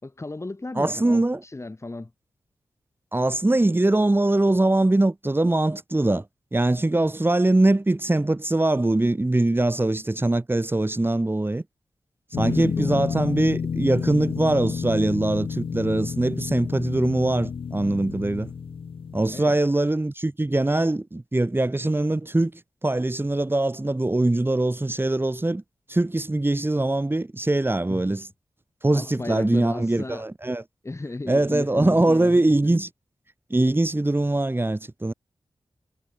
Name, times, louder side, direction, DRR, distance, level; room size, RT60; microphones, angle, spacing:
voice 1, 0.0-2.1 12.4-13.1 19.3-19.5 27.9-28.2 28.9-30.2 30.8-32.8, left 2 dB, 30° left, 2.8 m, -35 dB
voice 2, 0.8-1.4 3.1-6.2 6.5-11.6 12.4-18.5 19.1-22.5 22.8-25.6 25.9-28.2 28.8-30.6 31.3-32.9 33.5-35.1, right 2 dB, 25° right, 2.5 m, -22 dB
sound 1, 12.3-19.5, left 6 dB, 80° left, 3.0 m, -30 dB
cardioid pair, 55°, 9 cm